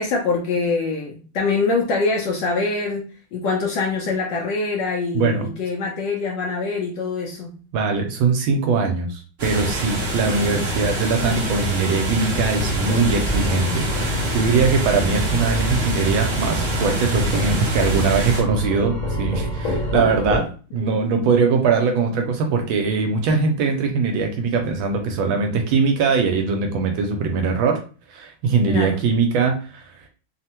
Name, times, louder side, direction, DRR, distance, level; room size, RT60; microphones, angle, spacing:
voice 1, 0.0-3.0 3.3-7.5 20.8-21.0 28.7-29.0, left 4 dB, 75° left, 0 dB, 1.1 m, -24 dB
voice 2, 5.1-5.5 7.7-27.8 28.1-29.8, right 5 dB, 80° right, 4 dB, 1.3 m, -21 dB
sound 1, 9.4-18.4, equal, 55° right, 0.6 m, -26 dB
sound 2, 12.5-20.4, equal, 50° left, 1.0 m, -27 dB
3.5 x 2.1 x 2.8 m, 0.37 s
omnidirectional pair, 2.3 m